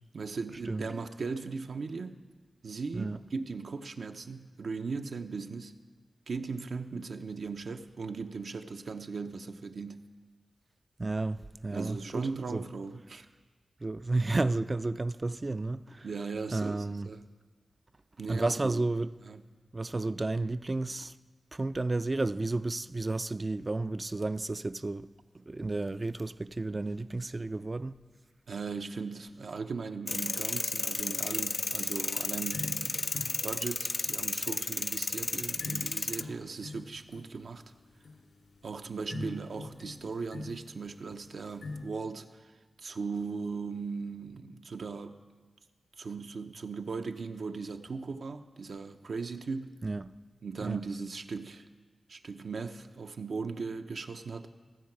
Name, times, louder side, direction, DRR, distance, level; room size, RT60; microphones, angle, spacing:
voice 1, 0.1-2.2 2.6-5.7 6.3-10.1 11.7-13.3 16.0-17.2 18.2-18.8 19.2-19.4 28.5-33.0 33.4-37.6 38.6-42.5 42.8-45.2 46.0-49.7 50.4-51.7 52.1-54.5, right 4 dB, 75° right, 0.6 m, -38 dB
voice 2, 11.0-12.6 13.8-16.1 16.5-17.1 18.3-19.1 19.7-21.1 21.5-25.1 25.3-28.0 39.1-39.3 49.8-50.1 50.6-50.8, right 2 dB, 35° right, 0.3 m, -32 dB
sound 1, 30.1-36.2, left 3 dB, 45° left, 0.4 m, -33 dB
sound 2, 32.5-41.8, left 3 dB, 80° left, 2.8 m, -46 dB
16.0 x 7.8 x 6.0 m
wide cardioid pair, 70°, 0 cm